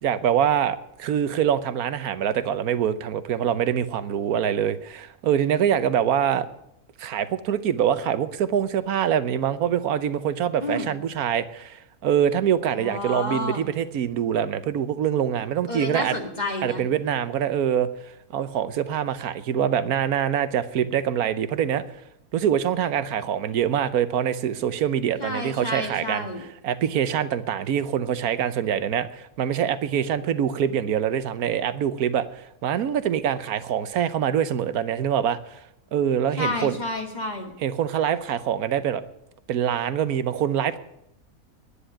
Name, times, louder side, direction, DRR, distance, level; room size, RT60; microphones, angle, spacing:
voice 1, 0.0-6.5 7.0-16.2 16.6-21.8 22.3-26.3 26.6-35.6 35.9-36.8 37.6-39.0 39.5-40.8, right 9 dB, 85° right, 13 dB, 1.3 m, -24 dB
voice 2, 10.6-11.0 12.7-13.7 15.7-16.8 25.2-26.4 36.4-37.5, left 2 dB, 30° left, 2 dB, 2.2 m, -30 dB
10.5 x 9.8 x 10.0 m, 0.79 s
omnidirectional pair, 1.5 m